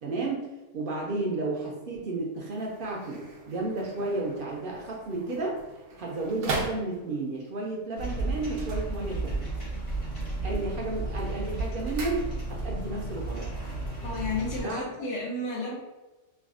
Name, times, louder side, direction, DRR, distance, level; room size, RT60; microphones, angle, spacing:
voice 1, 0.0-5.6 6.0-9.5 10.4-12.2 12.5-13.5 14.6-14.9, right 2 dB, 60° right, -2 dB, 0.6 m, -32 dB
sound 1, 2.4-7.4 8.4-9.6 9.9-10.4 10.7-12.8 13.1-13.2, right 3 dB, 80° right, 0.9 m, -39 dB
sound 2, 7.9-14.6, right 2 dB, 55° left, 1.4 m, -33 dB
voice 2, 14.0-15.8, left 2 dB, 80° left, -5 dB, 0.9 m, -32 dB
3.3 x 2.3 x 2.4 m, 1.1 s
omnidirectional pair, 1.2 m